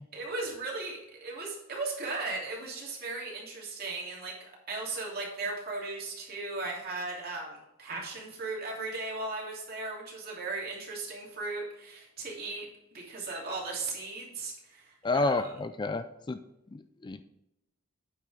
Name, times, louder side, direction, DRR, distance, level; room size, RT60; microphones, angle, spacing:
voice 1, 0.1-12.7 12.9-15.5, right 3 dB, 50° right, -3 dB, 2.9 m, -37 dB
voice 2, 15.0-16.4 16.7-17.2, left 3 dB, 20° left, 11 dB, 0.3 m, -30 dB
8.9 x 5.7 x 4.9 m, 0.89 s
head